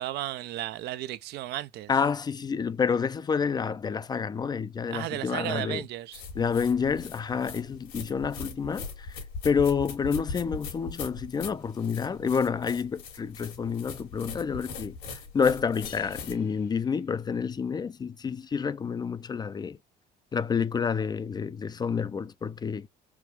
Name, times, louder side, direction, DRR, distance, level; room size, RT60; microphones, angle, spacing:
voice 1, 0.0-1.9 4.9-6.2, right 14 dB, 75° right, 0.5 m, -34 dB
voice 2, 1.9-5.8 6.4-19.8 20.3-22.9, left 6 dB, 25° left, 0.3 m, -29 dB
sound 1, 6.1-16.4, left 4 dB, 85° left, 2.3 m, -40 dB
sound 2, 15.8-17.7, left 9 dB, 65° left, 1.0 m, -51 dB
4.6 x 2.3 x 3.2 m
cardioid pair, 110°, 17 cm